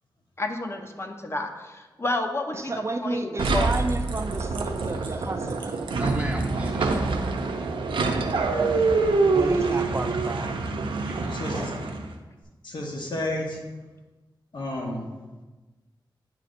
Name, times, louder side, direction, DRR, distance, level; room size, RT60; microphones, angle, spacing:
voice 1, 0.4-3.7, left 2 dB, 30° left, 5 dB, 0.6 m, -31 dB
voice 2, 2.5-5.8 9.3-10.6, right 2 dB, 35° right, 5 dB, 0.5 m, -31 dB
sound 1, 3.4-12.1, right 3 dB, 90° right, 0.5 m, -25 dB
voice 3, 5.9-7.0 11.0-12.0, right 1 dB, 15° right, -1 dB, 1.2 m, -37 dB
voice 4, 11.3-11.7 12.6-13.6 14.5-15.1, left 1 dB, 65° left, 0 dB, 1.1 m, -31 dB
9.7 x 4.0 x 2.5 m, 1.2 s
wide cardioid pair, 90°, 8 cm